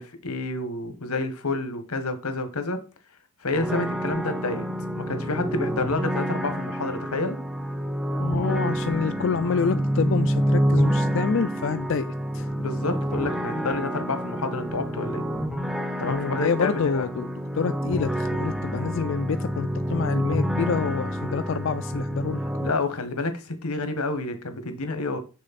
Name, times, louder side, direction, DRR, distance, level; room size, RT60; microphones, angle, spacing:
voice 1, 0.0-2.8 3.4-4.7 5.0-7.4 12.6-15.2 16.0-17.1 22.6-25.2, left 3 dB, 90° left, 1.3 m, -29 dB
sound 1, 3.5-22.7, equal, ahead, 0.5 m, -28 dB
voice 2, 8.2-12.5 16.0-22.4, left 5 dB, 55° left, 0.3 m, -27 dB
6.5 x 6.4 x 4.1 m
head